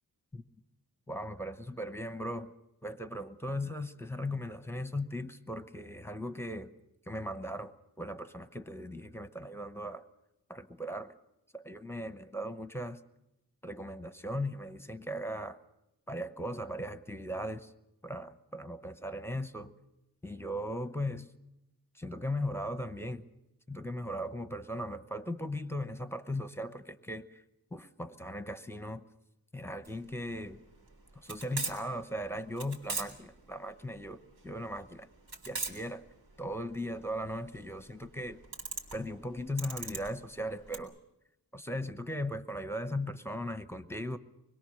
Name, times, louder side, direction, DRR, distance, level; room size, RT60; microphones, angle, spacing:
voice 1, 1.1-2.5 2.8-6.7 7.1-10.1 10.5-11.1 11.5-13.0 13.6-15.6 16.1-17.7 18.0-19.7 20.2-21.3 21.9-23.3 23.7-27.4 27.7-29.0 29.5-30.6 31.1-35.1 35.5-36.0 36.4-38.4 38.9-41.0 41.5-44.2, left 1 dB, 5° left, 10 dB, 0.9 m, -38 dB
sound 1, 29.8-40.8, right 3 dB, 75° right, 3.8 m, -41 dB
25.0 x 21.5 x 6.5 m, 0.88 s
wide cardioid pair, 125°, 37 cm